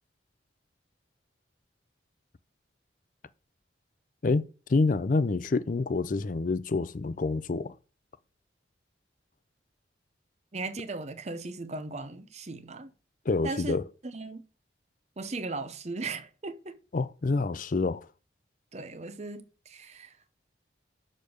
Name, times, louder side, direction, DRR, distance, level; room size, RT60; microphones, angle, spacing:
voice 1, 4.2-7.7 13.3-13.8 16.9-18.1, left 3 dB, 45° left, 0.5 m, -27 dB
voice 2, 10.5-12.9 13.4-13.8 14.0-14.4 15.2-16.8 18.7-20.3, right 3 dB, 35° right, 0.7 m, -37 dB
6.5 x 5.2 x 6.4 m
head